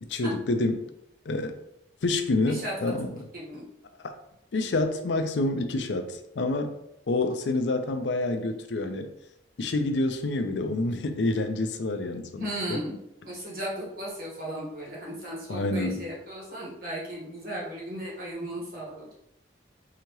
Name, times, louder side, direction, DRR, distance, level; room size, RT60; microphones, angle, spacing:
voice 1, 0.1-0.8 1.3-1.6 2.0-3.3 4.0-4.1 4.5-6.7 7.1-9.1 9.6-12.8 15.5-16.1, left 2 dB, 85° left, 7 dB, 0.5 m, -28 dB
voice 2, 2.4-2.9 3.3-3.6 12.4-12.9 13.2-19.1, right 1 dB, 55° right, -5 dB, 1.5 m, -35 dB
4.9 x 2.8 x 3.0 m, 0.80 s
head